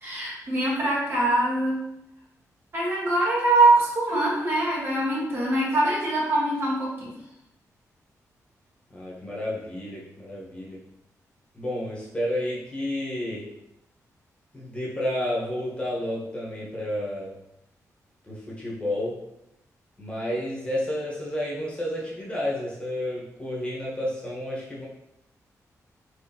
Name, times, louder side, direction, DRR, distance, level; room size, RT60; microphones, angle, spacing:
voice 1, 0.0-1.8 2.7-7.1, right 2 dB, 40° right, -5 dB, 1.5 m, -23 dB
voice 2, 8.9-10.8 11.5-13.5 14.5-17.3 18.2-19.1 20.0-24.9, left 1 dB, 20° left, -5 dB, 1.2 m, -31 dB
4.2 x 4.2 x 2.9 m, 0.83 s
wide cardioid pair, 155°, 6 cm